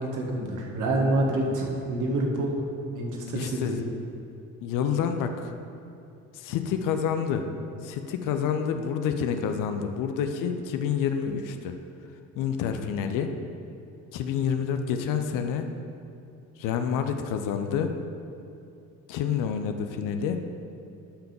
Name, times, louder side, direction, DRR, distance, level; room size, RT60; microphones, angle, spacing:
voice 1, 0.0-2.5 2.9-3.8, right 1 dB, 50° right, 0 dB, 1.9 m, -27 dB
voice 2, 3.3-3.8 4.6-5.5 6.3-7.5 7.8-11.8 12.3-13.3 14.1-15.7 16.6-17.9 19.1-20.4, left 7 dB, 50° left, 7 dB, 0.8 m, -28 dB
11.5 x 5.8 x 5.3 m, 2.6 s
figure-of-eight pair, 50°, 40 cm